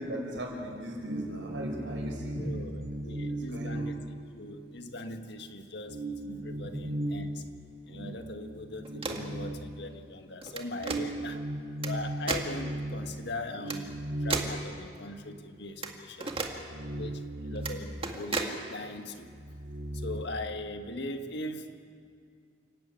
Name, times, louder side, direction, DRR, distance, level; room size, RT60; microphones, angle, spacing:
voice 1, 0.0-2.6 3.2-3.9 6.6-6.7, equal, 90° right, 0 dB, 5.7 m, -38 dB
sound 1, 0.6-4.9 5.3-5.4 5.8-10.3 10.7-15.4 15.8-15.9 16.3-18.8 19.0-20.2, right 1 dB, 60° right, 5.1 m, -38 dB
voice 2, 2.3-4.1 4.3-7.4 7.9-11.4 11.8-16.4 16.9-19.3 19.9-21.9, left 2 dB, 65° left, 6 dB, 1.7 m, -40 dB
sound 2, 8.8-9.3 10.4-11.0 11.8-11.9 12.3-12.5 13.7-13.8 14.3-14.6 15.8-15.9 16.2-16.5 17.6-17.7 18.0-18.5, right 4 dB, 30° right, 1.9 m, -33 dB
29.0 x 13.0 x 9.0 m, 2.3 s
head